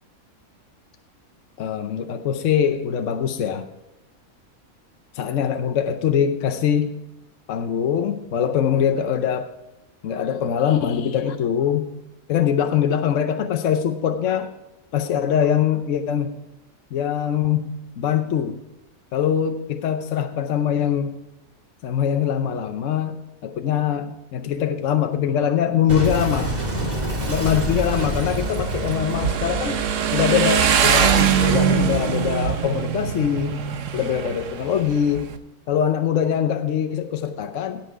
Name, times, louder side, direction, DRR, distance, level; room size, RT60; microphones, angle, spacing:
voice 1, 1.6-3.7 5.1-6.9 7.5-9.5 10.0-11.9 12.3-14.5 14.9-16.4 16.9-17.7 18.0-18.6 19.1-21.2 21.8-23.2 23.4-26.5 27.2-33.6 33.9-35.3 35.7-37.8, left 8 dB, 65° left, 8 dB, 1.0 m, -23 dB
Boom, 25.9-31.1, right 1 dB, 30° right, 1.8 m, -28 dB
Motorcycle, 27.1-35.4, right 8 dB, 65° right, 1.1 m, -23 dB
17.5 x 6.0 x 4.7 m, 0.96 s
omnidirectional pair, 1.5 m